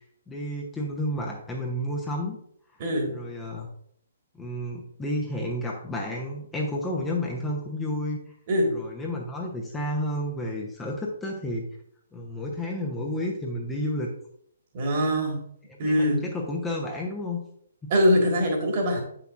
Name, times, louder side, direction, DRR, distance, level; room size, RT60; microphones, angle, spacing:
voice 1, 0.3-2.4 3.1-3.7 4.4-8.2 8.7-11.6 12.1-14.1 15.8-15.9 16.2-17.4 17.8-17.9, left 1 dB, 10° left, -2 dB, 0.9 m, -31 dB
voice 2, 2.8-3.2 8.5-8.8 14.7-15.4 15.8-16.2 17.9-19.0, equal, 40° right, 2 dB, 1.8 m, -23 dB
8.1 x 5.9 x 2.5 m, 0.68 s
figure-of-eight pair, 130°, 0 cm